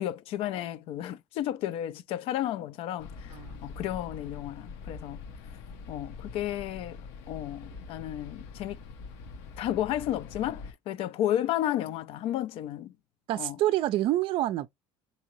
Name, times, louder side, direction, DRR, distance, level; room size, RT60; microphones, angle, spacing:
voice 1, 0.0-3.3 3.6-5.2 5.9-7.0 7.3-8.8 9.6-12.9 13.4-13.6, left 12 dB, 60° left, 0.4 m, -32 dB
sound 1, 3.0-10.7, left 5 dB, 80° left, 0.9 m, -44 dB
voice 2, 3.3-3.6 13.3-14.7, right 14 dB, 55° right, 0.4 m, -27 dB
3.7 x 2.8 x 3.0 m
cardioid pair, 120°, 11 cm